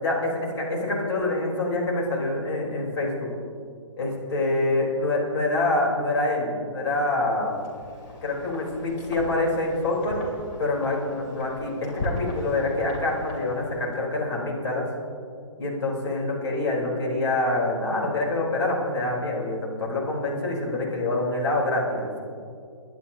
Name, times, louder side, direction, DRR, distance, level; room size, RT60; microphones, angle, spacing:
voice 1, 0.0-3.3 4.0-7.6 8.2-10.2 10.6-14.9 15.6-22.2, left 2 dB, 55° left, -3 dB, 3.9 m, -26 dB
Wind, 7.5-14.0, left 1 dB, 35° left, 3.0 m, -38 dB
28.5 x 10.5 x 2.9 m, 2.4 s
figure-of-eight pair, 135°, 17 cm